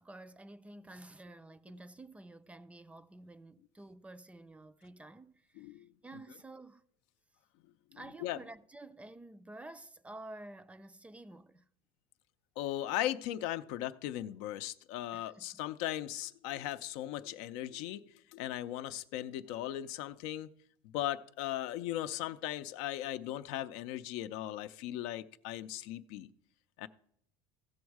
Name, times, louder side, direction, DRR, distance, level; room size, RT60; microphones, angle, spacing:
voice 1, 0.0-6.8 7.9-11.7 15.1-15.6 17.1-17.2, right 2 dB, 10° right, 0.4 m, -51 dB
voice 2, 5.6-5.9 7.9-8.4 12.6-18.0 18.3-20.5 20.9-26.3 26.8-26.9, left 13 dB, 75° left, 0.5 m, -38 dB
15.0 x 6.3 x 4.7 m
supercardioid pair, 115°, 11 cm